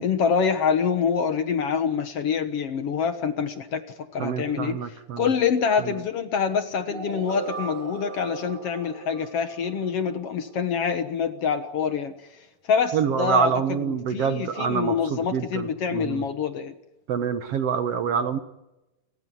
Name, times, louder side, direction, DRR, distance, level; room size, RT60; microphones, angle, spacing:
voice 1, 0.0-3.8 4.1-4.8 5.2-12.1 12.7-13.5 13.8-16.7, left 6 dB, 55° left, 9 dB, 2.0 m, -25 dB
voice 2, 4.2-5.3 5.8-6.0 12.9-16.3 17.1-18.4, right 7 dB, 60° right, 9 dB, 2.0 m, -26 dB
sound 1, 6.9-10.8, right 5 dB, 40° right, 3.4 m, -38 dB
29.5 x 15.0 x 9.9 m, 0.97 s
omnidirectional pair, 3.6 m